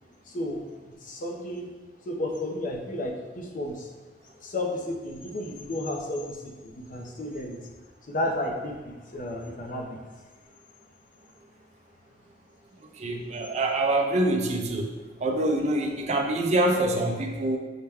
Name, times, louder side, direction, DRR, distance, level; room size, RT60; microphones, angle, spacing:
voice 1, 0.2-1.7 2.1-3.9 4.4-7.6 8.1-10.0, left 1 dB, 50° left, 2 dB, 0.5 m, -33 dB
voice 2, 13.0-14.9 15.2-17.6, right 1 dB, 40° right, 2 dB, 0.5 m, -25 dB
5.6 x 2.1 x 3.4 m, 1.3 s
head